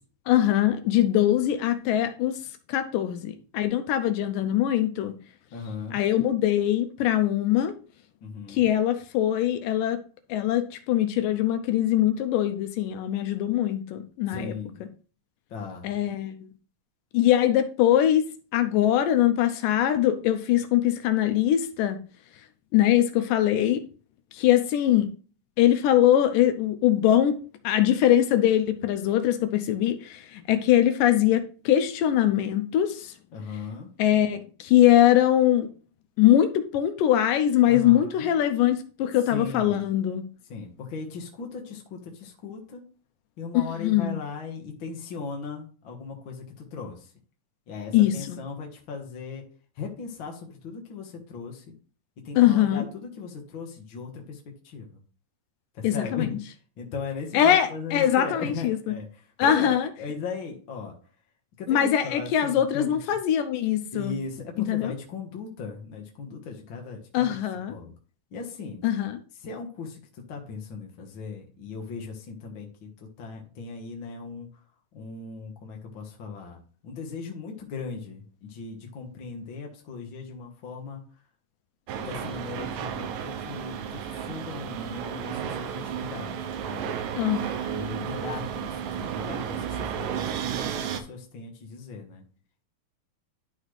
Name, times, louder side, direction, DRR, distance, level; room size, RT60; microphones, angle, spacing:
voice 1, 0.3-2.4 2.7-5.1 5.9-7.7 8.5-10.0 10.3-14.5 15.8-16.4 17.1-18.3 18.5-22.0 22.7-23.8 24.3-25.1 25.6-27.4 27.6-33.1 34.0-35.7 36.2-40.3 43.8-44.1 47.9-48.4 52.4-52.9 55.8-56.3 57.3-58.9 59.4-59.9 61.7-64.2 64.7-64.9 67.1-67.7 68.8-69.2 87.2-87.7, left 11 dB, 80° left, 9 dB, 2.2 m, -22 dB
voice 2, 5.5-6.0 8.2-8.7 14.3-14.8 15.5-16.0 33.3-33.9 37.6-38.3 39.3-39.8 40.5-42.8 43.4-47.1 47.7-49.4 49.8-51.6 52.2-54.9 55.7-56.3 56.8-60.9 61.6-62.9 63.9-67.3 67.7-67.9 68.3-68.8 69.4-70.0 70.3-74.5 74.9-81.0 82.0-86.4 86.7-86.9 87.7-92.2, left 5 dB, 65° left, 1 dB, 1.2 m, -38 dB
sound 1, 81.9-91.0, right 8 dB, 80° right, 2.2 m, -33 dB
11.5 x 4.1 x 3.2 m, 0.39 s
omnidirectional pair, 4.0 m